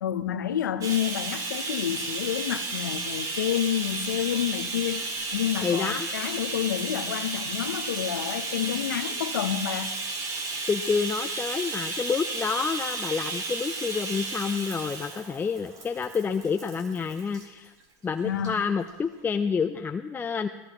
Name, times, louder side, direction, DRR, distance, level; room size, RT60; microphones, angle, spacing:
voice 1, 0.0-9.9 18.2-18.6, left 10 dB, 90° left, 12 dB, 0.9 m, -29 dB
Bathtub (filling or washing), 0.8-17.5 18.4-18.5 18.9-19.0, right 3 dB, 40° right, 3.5 m, -33 dB
voice 2, 5.6-6.1 10.7-17.7 18.0-20.5, left 5 dB, 20° left, 7 dB, 0.6 m, -28 dB
26.0 x 16.5 x 3.0 m, 1.2 s
hypercardioid pair, 95°, 10 cm